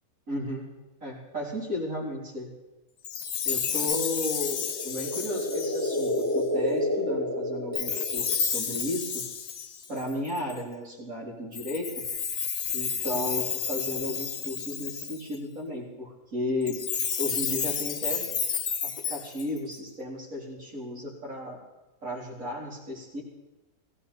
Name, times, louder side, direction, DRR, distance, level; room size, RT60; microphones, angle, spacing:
voice 1, 0.3-0.7 1.0-2.5 3.4-9.3 9.9-12.0 12.7-16.8 17.2-18.3 18.8-21.6 22.0-23.2, left 1 dB, 60° right, -6 dB, 4.4 m, -34 dB
Chime, 3.0-6.4 7.7-10.6 11.5-15.3 16.6-19.7, left 6 dB, 55° left, 1.1 m, -31 dB
sound 1, 4.5-8.6, left 1 dB, 10° left, 1.0 m, -30 dB
17.5 x 16.5 x 4.4 m, 1.1 s
omnidirectional pair, 1.6 m